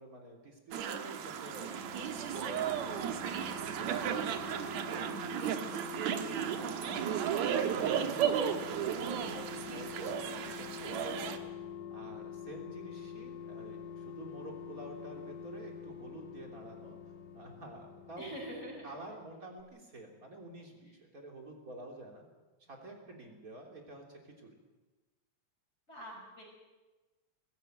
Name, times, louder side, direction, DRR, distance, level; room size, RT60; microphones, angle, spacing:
voice 1, 0.0-2.6 3.2-4.3 4.9-6.6 7.7-11.2 11.9-17.0 17.3-18.3 18.8-22.2 22.6-24.6, right 2 dB, 30° right, 1 dB, 3.6 m, -49 dB
sound 1, 0.7-11.4, right 8 dB, 75° right, 2.5 m, -34 dB
sound 2, 0.8-19.3 19.6-19.7, left 6 dB, 70° left, 2.5 m, -47 dB
voice 2, 10.9-11.4 18.2-19.0 25.9-26.4, right 1 dB, 20° left, -2 dB, 5.8 m, -45 dB
20.5 x 15.5 x 9.2 m, 1.2 s
omnidirectional pair, 3.3 m